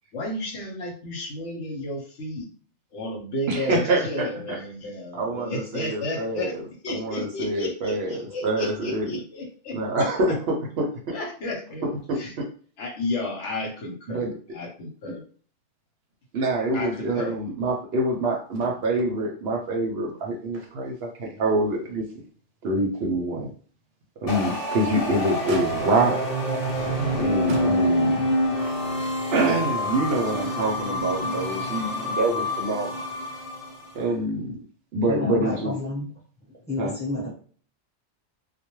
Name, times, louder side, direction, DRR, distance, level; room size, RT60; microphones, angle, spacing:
voice 1, 0.1-2.5 2.9-6.5 6.8-10.4 11.1-11.9 12.1-12.3 12.8-15.2 16.7-17.3 35.5-35.8, left 1 dB, 75° left, 1 dB, 1.0 m, -32 dB
voice 2, 3.5-4.3 5.1-9.2 9.7-11.1 11.8-12.5 14.1-14.3 15.1-15.2 16.3-22.0 22.6-23.5 24.2-26.2 27.2-28.3 29.3-33.0 33.9-34.6 34.9-35.7 36.8-36.9, right 2 dB, 65° right, 1 dB, 0.7 m, -26 dB
Motor vehicle (road), 18.5-19.1 19.5-19.6 20.1-21.0 21.5-21.6 22.1-22.2 24.4-24.9 25.5-26.1 26.9-27.1 27.5-28.3 29.3-29.4, right 3 dB, 90° right, 0.9 m, -38 dB
sound 1, 24.3-33.9, equal, 55° left, 0.9 m, -27 dB
voice 3, 35.1-36.1 36.7-37.3, left 2 dB, 10° left, -6 dB, 1.0 m, -30 dB
2.2 x 2.2 x 3.0 m, 0.43 s
omnidirectional pair, 1.2 m